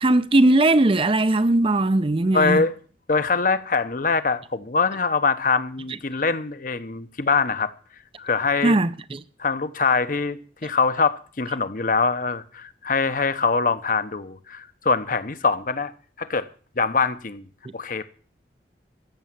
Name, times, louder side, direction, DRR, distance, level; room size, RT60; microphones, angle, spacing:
voice 1, 0.0-2.6 8.6-9.2, right 2 dB, 30° right, 0.6 m, -19 dB
voice 2, 2.3-2.7 3.1-7.7 8.2-8.8 9.4-15.9 16.2-16.5 16.8-17.5 17.7-18.1, left 4 dB, 50° left, 0.9 m, -23 dB
14.5 x 7.0 x 9.1 m
head